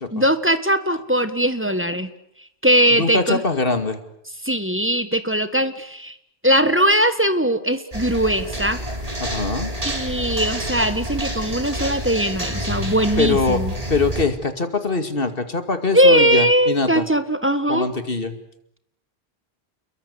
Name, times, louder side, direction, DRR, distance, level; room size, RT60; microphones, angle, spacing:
voice 1, 0.1-2.1 2.6-3.4 4.4-6.1 6.4-8.8 9.8-13.7 15.9-17.9, equal, 10° right, 10 dB, 1.7 m, -20 dB
voice 2, 2.9-4.0 9.2-9.7 13.2-13.6 13.9-17.1 17.7-18.4, left 3 dB, 60° left, 9 dB, 2.6 m, -23 dB
sound 1, 7.9-14.3, equal, 35° right, 4.1 m, -28 dB
29.5 x 22.0 x 8.2 m, 0.75 s
omnidirectional pair, 1.0 m